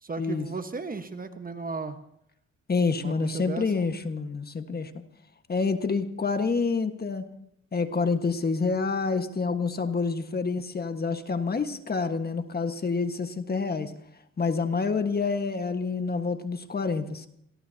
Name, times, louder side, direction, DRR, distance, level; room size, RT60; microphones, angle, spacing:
voice 1, 0.0-2.0 3.0-3.9, right 4 dB, 30° right, 8 dB, 1.3 m, -35 dB
voice 2, 2.7-4.9 5.5-7.3 7.7-13.9 14.4-17.3, left 4 dB, 30° left, 8 dB, 1.5 m, -27 dB
26.5 x 19.0 x 2.9 m, 0.73 s
cardioid pair, 90°, 30 cm